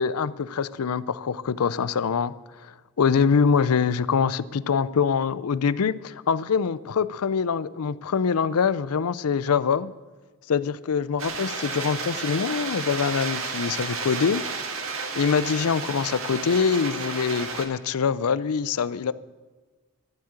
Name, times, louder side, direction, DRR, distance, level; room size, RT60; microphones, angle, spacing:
voice 1, 0.0-2.3 3.0-9.9 10.5-14.4 15.1-19.1, left 6 dB, 85° left, 17 dB, 0.5 m, -24 dB
sound 1, 11.2-17.6, right 4 dB, 65° right, 1.7 m, -32 dB
12.0 x 7.6 x 8.8 m, 1.3 s
head